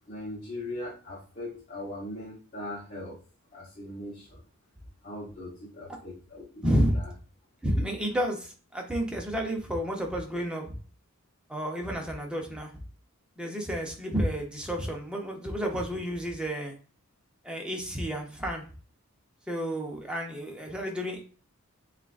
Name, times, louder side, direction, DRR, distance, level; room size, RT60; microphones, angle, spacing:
voice 1, 0.1-3.2 3.5-4.4 5.0-7.1, left 1 dB, 35° left, -5 dB, 1.1 m, -40 dB
voice 2, 6.6-7.0 7.6-10.7 11.5-12.8 13.4-16.7 17.4-18.6 19.5-21.2, equal, 5° right, 1 dB, 0.8 m, -30 dB
7.2 x 2.5 x 2.5 m, 0.38 s
head